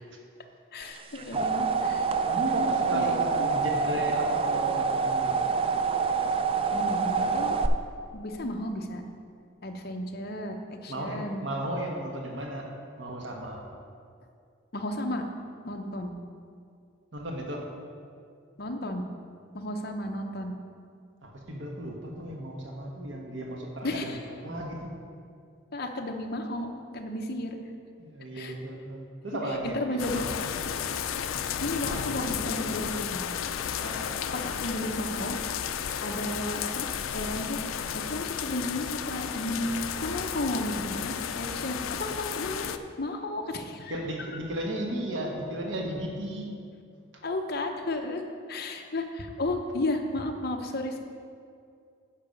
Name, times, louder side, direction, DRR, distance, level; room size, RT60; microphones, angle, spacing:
voice 1, 0.7-2.1 2.9-3.5 6.7-7.6 8.1-9.0 9.6-11.4 14.7-15.2 15.6-16.1 18.6-19.0 19.5-20.5 23.8-24.2 25.7-27.6 28.3-28.5 29.6-30.2 31.6-33.2 34.3-35.4 35.7-36.9 37.1-37.6 37.9-39.7 40.0-43.9 47.2-48.2 48.5-51.0, left 1 dB, 50° left, 3 dB, 0.8 m, -33 dB
sound 1, 1.0-7.7, right 5 dB, 25° right, 0.3 m, -26 dB
voice 2, 2.2-5.4 10.9-12.7 13.0-13.6 17.1-17.6 21.2-24.9 28.0-30.4 33.8-34.2 43.9-46.5, right 1 dB, 60° right, 0 dB, 1.2 m, -34 dB
sound 2, 30.0-42.8, left 8 dB, 75° left, 0.4 m, -33 dB
10.5 x 5.8 x 5.2 m, 2.3 s
head